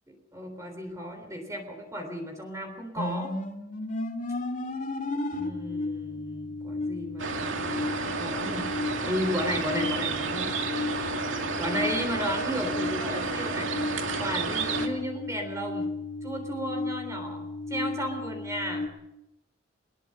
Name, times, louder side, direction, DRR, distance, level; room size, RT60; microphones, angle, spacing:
voice 1, 0.1-3.4 5.3-8.7 9.0-10.5 11.6-13.7 14.2-16.0 16.2-18.9, equal, 15° right, 4 dB, 3.6 m, -34 dB
sound 1, 3.0-18.9, left 2 dB, 40° left, 2.4 m, -34 dB
sound 2, 7.2-14.9, right 4 dB, 85° right, 2.4 m, -31 dB
21.5 x 21.0 x 6.6 m, 0.89 s
head